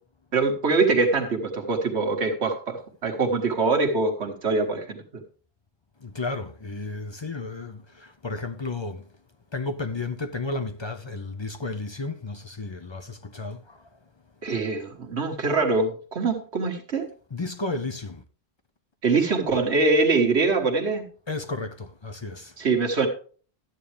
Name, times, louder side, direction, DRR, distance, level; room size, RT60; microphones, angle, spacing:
voice 1, 0.3-5.2 14.4-17.1 19.0-21.0 22.6-23.1, right 3 dB, 80° right, 1.7 m, -23 dB
voice 2, 6.0-9.0 9.5-13.9 17.3-18.2 21.3-22.5, left 3 dB, 30° left, 0.5 m, -33 dB
12.5 x 9.2 x 3.3 m
omnidirectional pair, 1.1 m